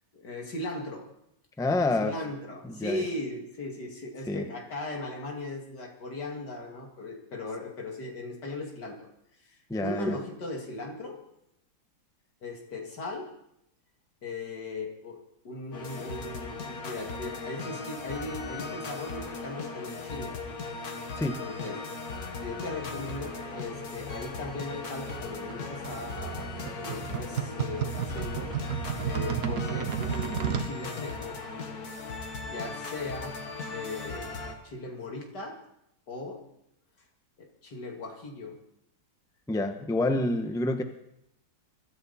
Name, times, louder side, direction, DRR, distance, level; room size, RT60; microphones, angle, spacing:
voice 1, 0.1-1.1 2.0-9.1 9.4-11.2 12.4-13.3 14.2-20.3 21.4-21.8 22.4-31.4 32.4-33.5 33.7-34.3 34.6-35.6 36.1-36.4 37.4-38.6 40.0-40.1, left 2 dB, 80° left, 1 dB, 3.1 m, -38 dB
voice 2, 1.6-2.2 2.6-3.0 4.3-4.4 9.7-10.2 21.2-21.4 39.5-40.8, left 2 dB, 5° left, 7 dB, 0.8 m, -27 dB
sound 1, 15.7-34.5, left 4 dB, 65° left, 2.1 m, -38 dB
sound 2, 25.1-30.7, right 8 dB, 65° right, 1.5 m, -32 dB
24.0 x 13.0 x 4.3 m, 0.78 s
omnidirectional pair, 1.8 m